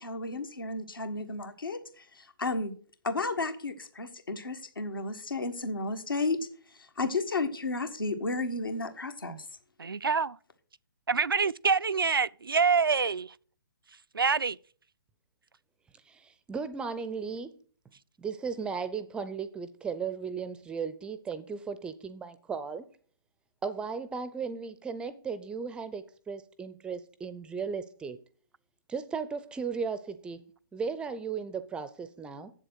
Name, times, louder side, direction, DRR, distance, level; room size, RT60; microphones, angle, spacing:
voice 1, 0.0-2.7 3.0-6.4 6.7-9.4, left 3 dB, 75° left, 1.5 m, -33 dB
voice 2, 9.8-10.4 11.1-13.3 14.1-14.6, right 5 dB, 80° right, 0.4 m, -26 dB
voice 3, 16.1-17.6 18.2-22.8 23.6-28.2 28.9-30.4 30.7-32.5, right 5 dB, 10° right, 0.5 m, -36 dB
7.9 x 7.3 x 6.4 m
figure-of-eight pair, 125°, 12 cm